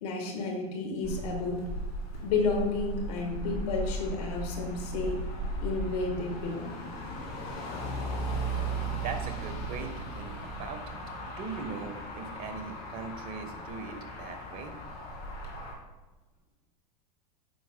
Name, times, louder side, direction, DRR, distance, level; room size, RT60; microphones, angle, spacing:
voice 1, 0.0-1.7 2.2-5.2 5.6-6.7, left 3 dB, 70° left, 2 dB, 1.5 m, -31 dB
Motor vehicle (road), 1.0-15.7, right 1 dB, 50° left, 2.2 m, -37 dB
voice 2, 8.8-10.3 10.6-11.0 11.2-14.7, right 5 dB, 45° right, 6 dB, 1.2 m, -40 dB
9.1 x 6.0 x 2.2 m, 1.1 s
hypercardioid pair, 90°, 21 cm